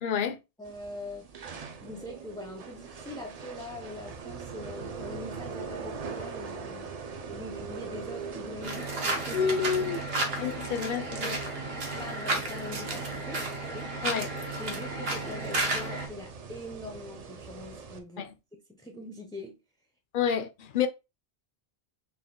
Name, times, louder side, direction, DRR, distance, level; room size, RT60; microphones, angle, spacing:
voice 1, 0.0-0.4 9.3-10.0 10.4-11.4 14.0-14.3 18.2-18.3 20.1-20.9, left 7 dB, 60° left, 0.7 m, -29 dB
voice 2, 0.6-1.3 1.8-6.9 7.3-9.9 10.7-11.6 12.0-13.4 13.7-13.9 14.6-19.6, left 2 dB, 5° left, 0.4 m, -43 dB
sound 1, 0.6-18.0, right 5 dB, 45° right, 0.6 m, -42 dB
sound 2, 8.6-16.1, right 2 dB, 65° right, 1.2 m, -33 dB
4.3 x 2.4 x 3.7 m
omnidirectional pair, 1.1 m